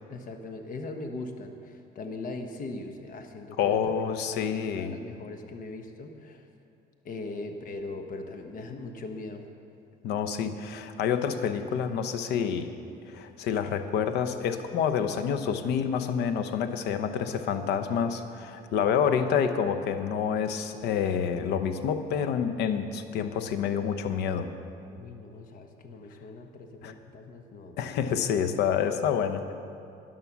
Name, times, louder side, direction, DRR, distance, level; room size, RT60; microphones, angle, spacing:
voice 1, 0.1-6.5 7.0-9.5 17.2-17.4 24.9-27.8, left 2 dB, 55° left, 5 dB, 1.1 m, -40 dB
voice 2, 3.6-4.9 10.0-12.7 13.1-24.5 26.8-26.9 27.8-29.4, left 7 dB, 80° left, 9 dB, 0.8 m, -28 dB
11.0 x 11.0 x 6.0 m, 2.6 s
cardioid pair, 110°, 17 cm